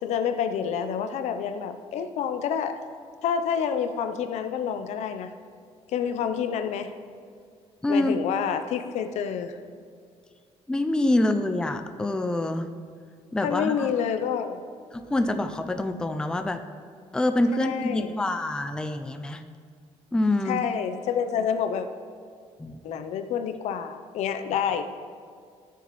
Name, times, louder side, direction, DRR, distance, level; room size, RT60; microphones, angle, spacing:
voice 1, 0.0-2.7 3.2-5.3 5.9-6.9 7.9-9.6 13.4-14.6 17.6-18.1 20.5-21.9 22.8-24.8, left 7 dB, 75° left, 9 dB, 0.6 m, -28 dB
voice 2, 7.8-8.2 10.7-12.7 13.3-13.9 14.9-16.6 17.1-19.5 20.1-20.6 22.6-23.0, left 1 dB, 5° left, 8 dB, 0.4 m, -26 dB
14.5 x 6.9 x 3.1 m, 2.2 s
cardioid pair, 140°, 11 cm